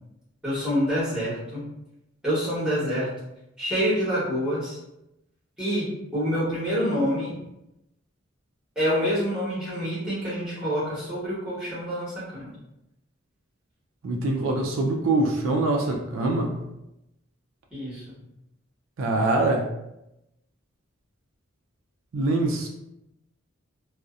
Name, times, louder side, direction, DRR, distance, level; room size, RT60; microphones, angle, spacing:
voice 1, 0.4-1.7 2.2-3.1 3.6-4.8 5.6-7.4 8.8-12.5 17.7-18.2, equal, 5° right, -9 dB, 1.0 m, -27 dB
voice 2, 14.0-16.6 19.0-19.7 22.1-22.7, right 2 dB, 75° right, 1 dB, 0.4 m, -24 dB
2.6 x 2.0 x 2.3 m, 0.88 s
head